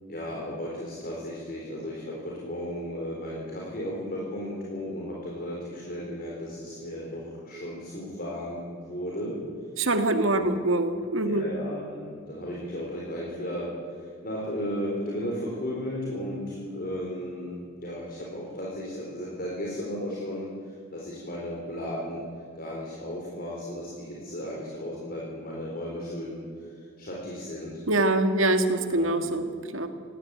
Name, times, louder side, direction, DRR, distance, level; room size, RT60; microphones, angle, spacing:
voice 1, 0.1-9.4 10.3-10.5 11.2-22.2 22.6-26.4 26.7-27.8 28.9-29.4, equal, 45° left, -3 dB, 4.1 m, -35 dB
voice 2, 9.8-11.5 27.9-29.4 29.7-29.9, right 2 dB, 75° right, 8 dB, 1.9 m, -24 dB
19.0 x 17.0 x 8.9 m, 2.3 s
head